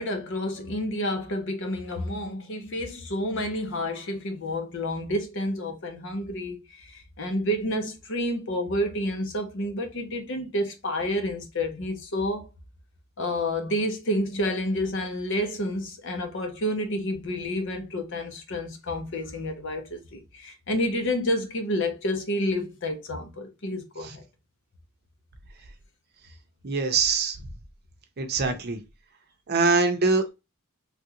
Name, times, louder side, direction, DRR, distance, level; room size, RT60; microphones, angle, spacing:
voice 1, 0.0-12.5 13.2-24.2, left 1 dB, 60° left, 0.8 m, -29 dB
voice 2, 26.6-27.4 28.2-28.8 29.5-30.3, right 4 dB, 50° right, 0.7 m, -23 dB
3.4 x 2.4 x 2.8 m
head